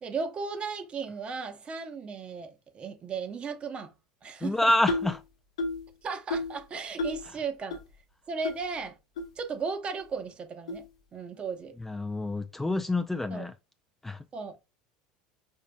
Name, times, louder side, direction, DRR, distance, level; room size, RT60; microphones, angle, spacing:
voice 1, 0.0-3.9 4.2-4.6 6.0-7.8 8.3-9.0 9.4-10.8 11.1-11.7 13.3-13.5 14.3-14.6, right 5 dB, 35° right, 0.9 m, -35 dB
voice 2, 4.4-5.2 11.8-13.5 14.0-14.2, left 1 dB, 10° left, 0.3 m, -27 dB
sound 1, 4.9-5.2 5.6-5.9 6.3-6.6 7.0-7.3 7.7-7.8 8.4-8.6 9.2-9.3 10.0-10.1 10.7-10.9, left 2 dB, 85° left, 0.9 m, -31 dB
5.3 x 2.4 x 2.2 m
hypercardioid pair, 90°, 3 cm